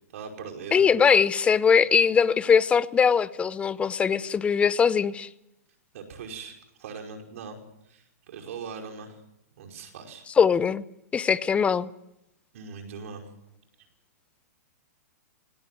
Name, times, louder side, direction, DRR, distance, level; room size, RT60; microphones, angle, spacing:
voice 1, 0.1-0.8 1.7-1.9 5.9-9.2 9.6-10.3 12.5-13.3, right 5 dB, 60° right, 5.2 m, -41 dB
voice 2, 0.7-5.3 10.4-10.8 11.1-11.9, left 6 dB, 15° left, 0.7 m, -21 dB
18.5 x 18.0 x 9.3 m
hypercardioid pair, 135°, 8 cm